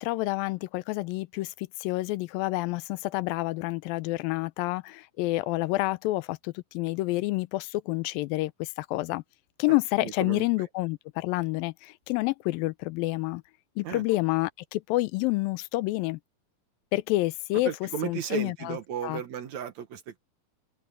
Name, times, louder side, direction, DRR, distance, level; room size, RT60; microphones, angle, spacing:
voice 1, 0.0-9.2 9.6-13.4 13.8-16.2 16.9-17.7 18.0-18.8 19.0-19.2, left 19 dB, 90° left, 2.4 m, -28 dB
voice 2, 9.7-10.5 13.8-14.1 17.5-20.2, right 7 dB, 60° right, 2.3 m, -35 dB
omnidirectional pair, 4.1 m